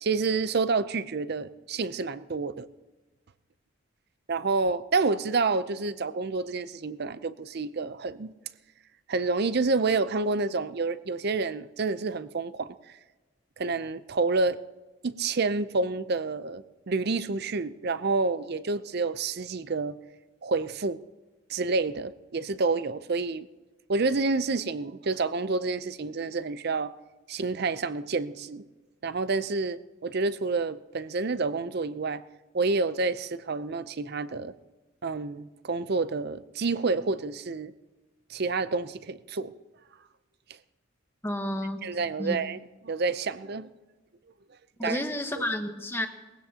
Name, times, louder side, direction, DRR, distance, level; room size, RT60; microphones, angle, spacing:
voice 1, 0.0-2.7 4.3-8.3 9.1-12.7 13.6-14.6 15.0-20.0 20.4-21.0 21.5-23.5 23.9-26.9 27.3-28.6 29.0-32.2 32.5-34.5 35.0-37.7 38.3-39.5 41.8-43.7 44.8-45.0 45.4-45.5, right 3 dB, 50° right, 14 dB, 0.5 m, -28 dB
voice 2, 41.2-41.9 42.2-42.4 44.8-46.1, left 1 dB, 10° left, 5 dB, 1.1 m, -31 dB
21.0 x 16.0 x 2.9 m, 1.2 s
head